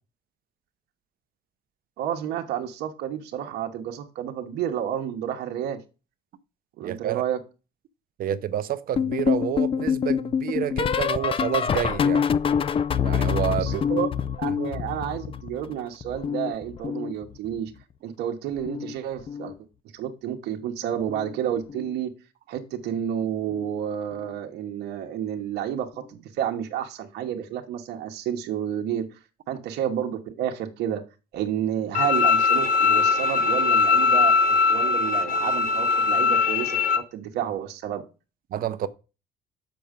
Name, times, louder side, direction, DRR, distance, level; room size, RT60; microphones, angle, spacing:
voice 1, 2.0-5.8 6.8-7.4 13.6-14.1 14.4-17.7 18.0-19.5 19.9-22.1 22.5-29.2 29.5-31.0 31.3-34.4 34.7-36.8 37.1-38.0, right 10 dB, 80° right, 1.2 m, -30 dB
voice 2, 6.8-7.2 8.2-12.3 13.0-13.8 14.5-14.6 38.5-38.9, right 10 dB, 60° right, 0.8 m, -28 dB
sound 1, 9.0-15.7 16.0-17.6 18.6-18.9 19.2-19.5 21.1-21.4 21.7-21.9 23.5-23.6, left 7 dB, 35° left, 0.5 m, -26 dB
Bowed string instrument, 31.9-37.0, left 5 dB, 55° left, 1.2 m, -21 dB
7.0 x 5.9 x 5.2 m
cardioid pair, 110°, 17 cm